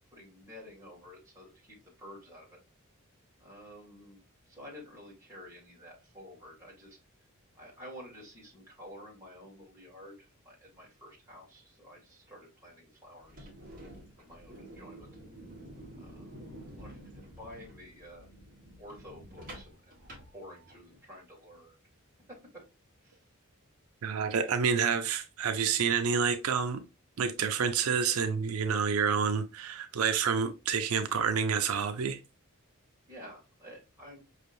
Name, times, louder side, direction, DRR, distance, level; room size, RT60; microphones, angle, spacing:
voice 1, 0.1-2.6 3.4-7.0 7.6-13.5 14.2-15.1 16.0-16.3 16.7-18.3 18.8-21.8 22.5-22.6 23.0-23.2 33.1-34.2, equal, 15° right, 2.1 m, -51 dB
sound 1, 13.2-21.0, right 1 dB, 40° right, 1.5 m, -49 dB
voice 2, 24.0-26.8 27.2-32.2, right 6 dB, 85° right, 0.5 m, -28 dB
5.2 x 3.3 x 2.6 m
head